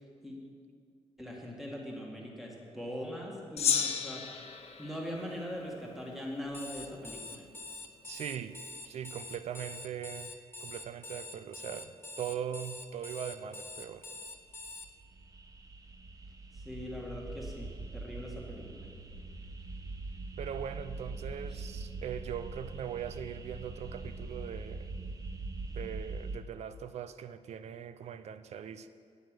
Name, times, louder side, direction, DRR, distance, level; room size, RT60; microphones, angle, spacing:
voice 1, 1.2-4.2 4.8-7.4 16.6-18.9 21.5-21.6, equal, ahead, -2 dB, 2.1 m, -41 dB
Gong, 3.6-6.2, left 7 dB, 65° left, 1.0 m, -34 dB
Alarm, 6.5-14.9, left 3 dB, 20° left, 0.6 m, -45 dB
voice 2, 8.0-8.6 8.9-10.3 10.6-14.1 20.4-24.9 25.7-28.9, right 9 dB, 75° right, 12 dB, 0.5 m, -40 dB
sound 1, 14.4-26.4, right 3 dB, 30° right, 0.9 m, -42 dB
9.2 x 9.1 x 6.4 m, 2.2 s
cardioid pair, 110°, 11 cm